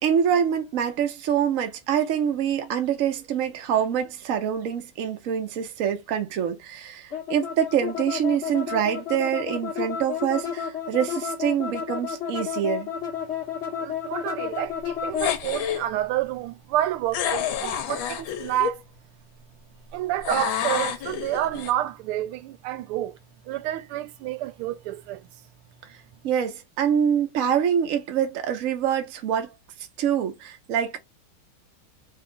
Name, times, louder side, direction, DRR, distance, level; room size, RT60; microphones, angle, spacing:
voice 1, 0.0-12.9 26.2-29.5 30.0-31.0, right 8 dB, 55° right, 0.9 m, -25 dB
sound 1, 7.1-15.4, left 8 dB, 45° left, 0.9 m, -31 dB
voice 2, 13.8-18.8 19.9-23.2 23.4-25.2, right 14 dB, 90° right, 1.5 m, -29 dB
sound 2, 15.2-15.8 17.1-18.8 20.2-21.7, left 9 dB, 75° left, 1.4 m, -28 dB
3.5 x 2.4 x 3.6 m
omnidirectional pair, 2.3 m